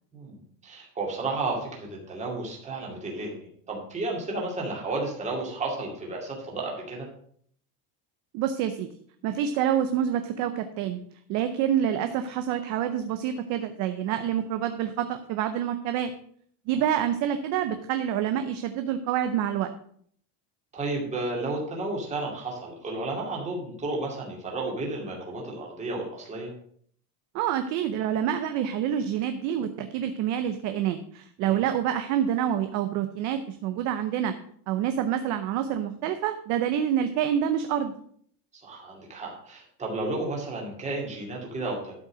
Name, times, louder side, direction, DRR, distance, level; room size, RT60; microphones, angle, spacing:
voice 1, 0.1-7.1 20.7-26.5 31.4-31.7 38.6-41.9, right 2 dB, 15° right, -1 dB, 2.3 m, -32 dB
voice 2, 8.3-8.9 9.2-11.0 11.3-16.1 16.7-19.7 27.3-34.3 34.7-37.9, right 9 dB, 40° right, 9 dB, 0.6 m, -27 dB
12.0 x 5.5 x 6.2 m, 0.62 s
cardioid pair, 175°, 47 cm